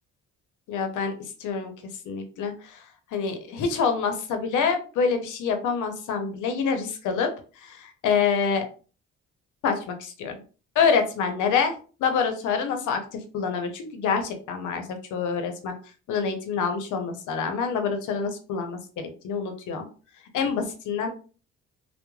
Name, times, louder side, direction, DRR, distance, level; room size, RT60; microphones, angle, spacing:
voice 1, 0.7-1.1 1.4-1.7 2.0-2.8 3.1-7.3 7.6-8.7 9.6-10.4 10.8-11.7 12.0-15.7 16.1-19.9 20.3-21.1, left 6 dB, 80° left, 6 dB, 0.7 m, -26 dB
3.0 x 2.1 x 2.2 m, 0.37 s
cardioid pair, 90°, 30 cm